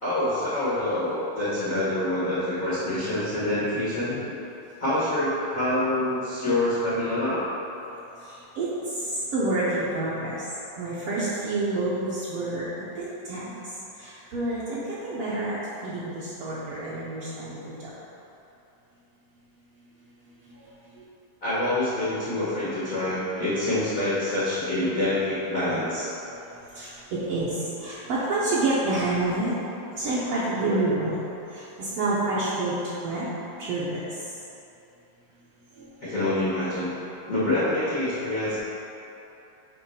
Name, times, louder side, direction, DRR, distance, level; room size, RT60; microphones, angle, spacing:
voice 1, 0.0-4.3 4.8-7.5 21.4-26.1 36.0-36.9 37.3-38.6, left 1 dB, 85° left, -11 dB, 0.7 m, -26 dB
voice 2, 9.3-10.3 10.8-12.6 12.9-13.5 14.0-15.5 15.8-17.7 26.8-26.9 27.3-27.5 27.8-29.5 30.0-31.2 31.8-32.7 33.0-33.3 33.7-34.0, right 2 dB, 80° right, -10 dB, 1.3 m, -27 dB
8.4 x 3.2 x 5.6 m, 3.0 s
omnidirectional pair, 4.0 m